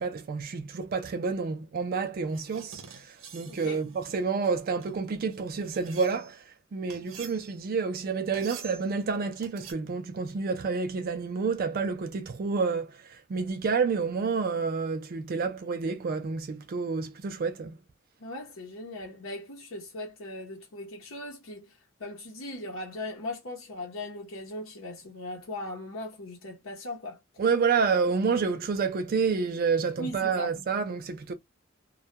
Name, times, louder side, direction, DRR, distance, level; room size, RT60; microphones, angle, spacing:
voice 1, 0.0-6.4 6.7-17.8 27.4-31.3, right 5 dB, 45° right, 0.4 m, -29 dB
sound 1, 2.3-6.4 6.9-7.7 8.3-8.9 9.4-9.7, right 6 dB, 85° right, 0.6 m, -48 dB
voice 2, 3.5-3.8 18.2-27.2 30.0-30.5, left 1 dB, 90° left, 0.8 m, -39 dB
2.2 x 2.1 x 2.7 m
head